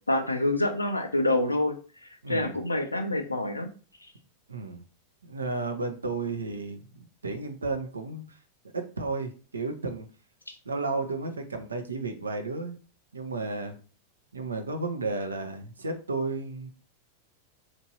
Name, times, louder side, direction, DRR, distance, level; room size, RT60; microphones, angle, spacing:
voice 1, 0.1-1.7 2.3-3.7 10.5-10.6, left 1 dB, 80° left, 7 dB, 0.4 m, -26 dB
voice 2, 2.2-2.6 4.5-4.8 5.3-8.4 8.7-10.1 10.7-12.8 13.1-13.7 14.3-16.7, right 3 dB, 75° right, 6 dB, 0.5 m, -33 dB
3.0 x 2.5 x 2.8 m, 0.37 s
figure-of-eight pair, 90°, 0 cm